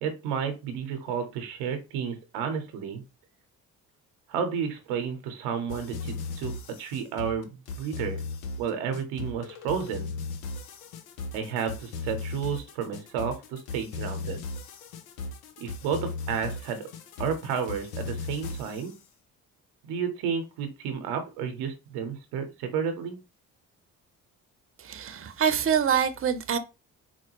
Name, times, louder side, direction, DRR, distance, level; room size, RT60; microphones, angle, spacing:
voice 1, 0.0-3.0 4.3-6.5 6.8-8.2 8.6-10.1 11.3-14.4 15.6-16.9 17.2-19.0 19.8-23.2, right 7 dB, 85° right, 0.8 m, -31 dB
sound 1, 5.7-18.9, left 4 dB, 85° left, 0.6 m, -37 dB
voice 2, 24.8-26.6, right 8 dB, 35° right, 0.7 m, -25 dB
4.3 x 2.2 x 3.0 m
hypercardioid pair, 50°, 38 cm